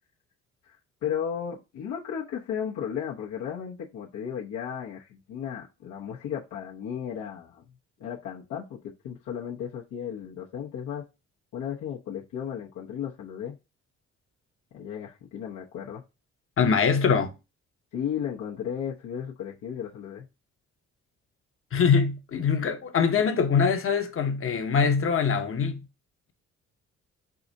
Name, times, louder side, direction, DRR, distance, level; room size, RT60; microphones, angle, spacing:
voice 1, 1.0-7.6 8.0-8.8 9.0-11.0 11.5-13.5 14.7-16.0 17.9-20.3, left 8 dB, 80° left, 1.0 m, -34 dB
voice 2, 16.6-17.3 21.7-25.8, left 6 dB, 45° left, 0.9 m, -23 dB
4.8 x 2.6 x 4.0 m
cardioid pair, 90°, 30 cm